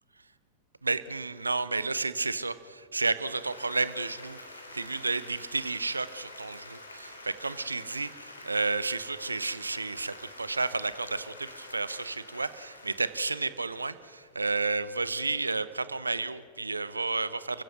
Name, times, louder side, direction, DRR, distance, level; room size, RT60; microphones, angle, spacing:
voice 1, 0.8-4.4 4.7-17.6, right 3 dB, 80° right, 15 dB, 0.8 m, -31 dB
Applause, 3.0-14.7, left 2 dB, 80° left, 2.8 m, -48 dB
29.5 x 15.5 x 6.6 m, 2.4 s
figure-of-eight pair, 90°, 0 cm